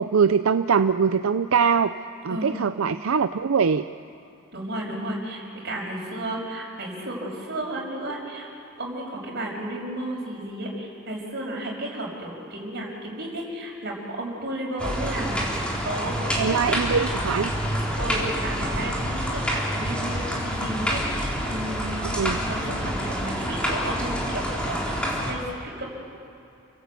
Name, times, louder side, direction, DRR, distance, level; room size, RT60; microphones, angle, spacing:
voice 1, 0.0-3.9 16.4-17.5 22.0-22.4, right 6 dB, 85° right, 10 dB, 0.5 m, -22 dB
voice 2, 4.5-8.5 8.8-15.4 15.8-16.8 18.0-25.9, right 1 dB, 55° right, -1 dB, 5.9 m, -33 dB
sound 1, 14.8-25.3, equal, 5° left, 3.8 m, -27 dB
29.5 x 17.0 x 8.4 m, 2.7 s
head